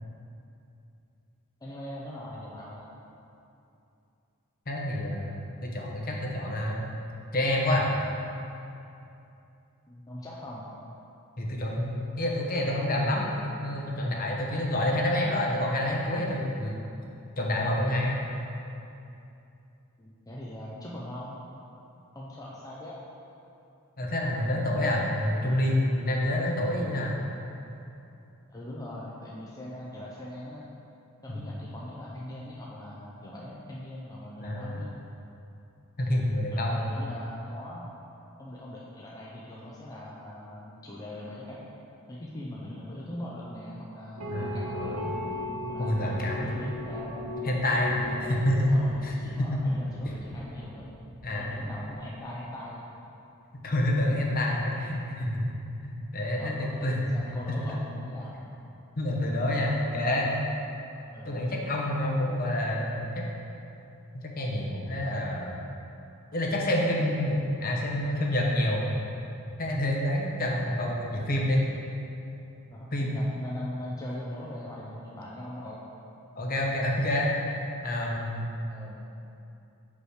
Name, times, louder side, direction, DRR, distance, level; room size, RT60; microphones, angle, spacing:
voice 1, 1.6-2.9 9.9-10.7 20.0-21.4 22.1-23.0 24.8-25.1 28.5-30.6 31.2-34.9 36.5-37.9 38.4-41.6 42.1-45.2 45.7-47.3 47.9-51.0 51.3-52.8 56.3-58.4 61.1-61.4 72.7-75.8 78.7-79.0, left 1 dB, 15° left, -6 dB, 0.6 m, -41 dB
voice 2, 4.7-6.8 7.3-7.9 11.4-13.3 13.6-16.8 17.4-18.2 24.0-27.2 31.3-31.5 34.4-34.9 36.0-36.9 44.3-45.0 45.8-46.5 47.4-48.0 48.3-49.1 49.4-49.8 51.2-51.6 53.6-55.4 55.8-57.2 57.5-57.8 59.0-60.3 61.3-63.3 64.1-65.6 66.3-68.8 69.6-71.7 72.9-73.2 76.3-77.3 77.8-78.5, left 1 dB, 40° left, -2 dB, 0.9 m, -28 dB
sound 1, 44.2-51.7, left 1 dB, 65° right, 0.8 m, -38 dB
6.2 x 5.3 x 4.9 m, 2.8 s
head